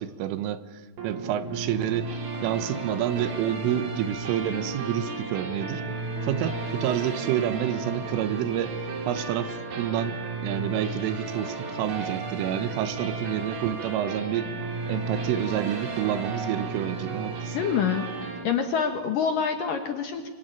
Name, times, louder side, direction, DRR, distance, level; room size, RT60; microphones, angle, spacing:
voice 1, 0.0-2.2 2.4-5.8 6.2-8.8 9.1-14.5 14.9-17.6, right 11 dB, 90° right, 12 dB, 3.7 m, -29 dB
sound 1, 1.0-18.4, right 3 dB, 55° right, 4.7 m, -34 dB
voice 2, 17.5-18.1 18.4-20.3, left 7 dB, 65° left, 5 dB, 2.3 m, -26 dB
26.5 x 24.5 x 9.1 m, 1.4 s
omnidirectional pair, 5.6 m